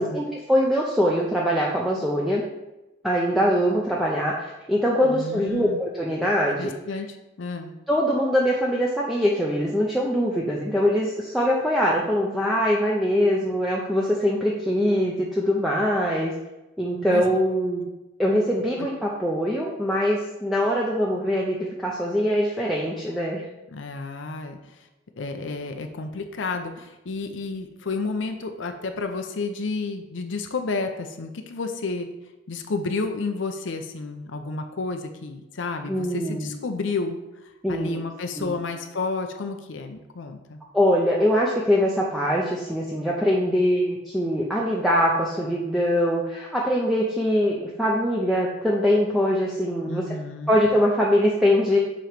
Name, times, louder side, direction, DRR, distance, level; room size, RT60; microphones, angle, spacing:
voice 1, 0.0-2.4 3.0-6.7 7.9-16.3 16.8-17.8 18.2-23.4 35.9-36.5 37.6-38.0 38.4-38.6 40.7-50.2 50.5-51.8, equal, ahead, -4 dB, 0.6 m, -23 dB
voice 2, 5.0-5.8 6.6-7.7 17.1-17.3 23.7-24.6 25.2-32.1 32.5-37.2 37.7-40.6 49.9-50.6, left 3 dB, 80° left, 6 dB, 0.6 m, -31 dB
7.4 x 3.0 x 5.1 m, 1.0 s
head